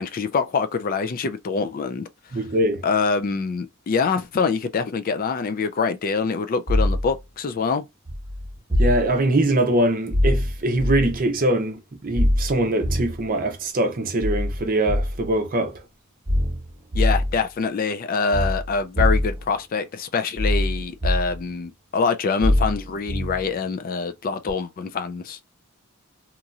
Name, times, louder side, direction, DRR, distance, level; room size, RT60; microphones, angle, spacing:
voice 1, 0.0-2.1 2.8-7.9 16.9-25.4, left 5 dB, 40° left, 0.3 m, -25 dB
voice 2, 2.3-2.8 8.8-15.8, right 1 dB, 40° right, 0.6 m, -22 dB
sound 1, 6.7-7.2 8.1-9.2 10.1-11.3 12.2-13.3 14.2-15.4 16.3-17.4 18.3-19.5 20.4-21.5 22.4-23.5 24.5-24.6, left 1 dB, 20° right, 1.2 m, -23 dB
2.9 x 2.6 x 2.4 m
head